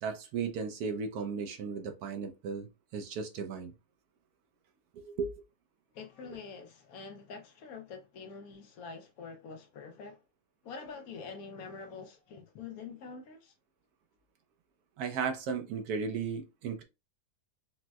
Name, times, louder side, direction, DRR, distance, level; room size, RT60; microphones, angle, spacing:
voice 1, 0.0-2.7 2.9-3.7 4.9-5.3 15.0-16.8, right 5 dB, 75° right, 1.0 m, -35 dB
voice 2, 5.9-10.2 10.6-13.5, left 5 dB, 70° left, 1.0 m, -46 dB
4.2 x 2.1 x 2.2 m
omnidirectional pair, 1.8 m